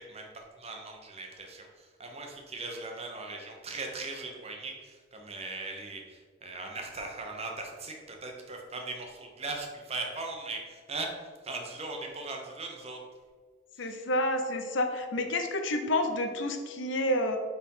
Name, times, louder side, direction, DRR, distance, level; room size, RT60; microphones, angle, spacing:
voice 1, 0.0-11.2 11.4-13.0 13.8-14.0, right 3 dB, 35° right, 2 dB, 1.0 m, -39 dB
voice 2, 13.8-17.4, left 1 dB, 75° left, 6 dB, 0.7 m, -29 dB
4.7 x 4.5 x 5.4 m, 1.5 s
head